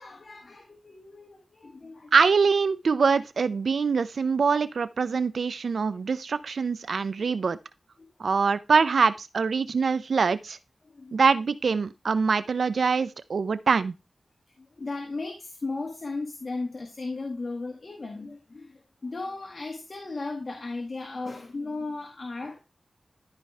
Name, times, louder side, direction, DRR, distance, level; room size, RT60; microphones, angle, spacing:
voice 1, 0.0-2.2 7.2-7.3 8.0-8.1 10.8-11.2 14.6-22.6, left 3 dB, 55° left, 1.7 m, -36 dB
voice 2, 2.1-7.6 8.2-10.6 11.1-13.9, right 5 dB, 80° right, 0.5 m, -24 dB
13.0 x 4.8 x 3.3 m
cardioid pair, 45°, 0 cm